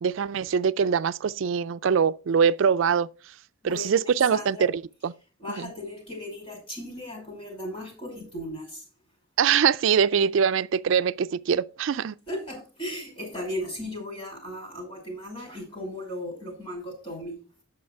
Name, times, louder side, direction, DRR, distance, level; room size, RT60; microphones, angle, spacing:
voice 1, 0.0-3.1 3.6-5.1 5.6-5.7 9.4-12.1, right 7 dB, 70° right, 0.4 m, -23 dB
voice 2, 3.6-4.7 5.4-8.8 12.3-17.4, left 1 dB, 30° left, 5.4 m, -36 dB
8.7 x 6.6 x 4.6 m
head